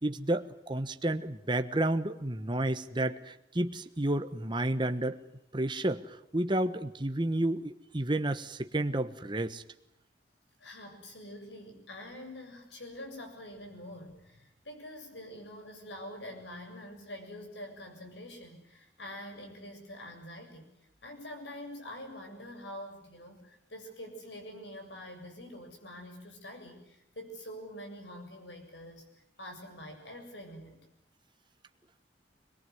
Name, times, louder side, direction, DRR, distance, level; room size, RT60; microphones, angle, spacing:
voice 1, 0.0-5.2 5.5-9.6, right 1 dB, 25° right, 9 dB, 1.2 m, -31 dB
voice 2, 10.6-20.6 21.0-29.0 29.4-30.8, left 1 dB, 80° left, 4 dB, 7.4 m, -45 dB
23.0 x 22.0 x 9.6 m, 0.78 s
head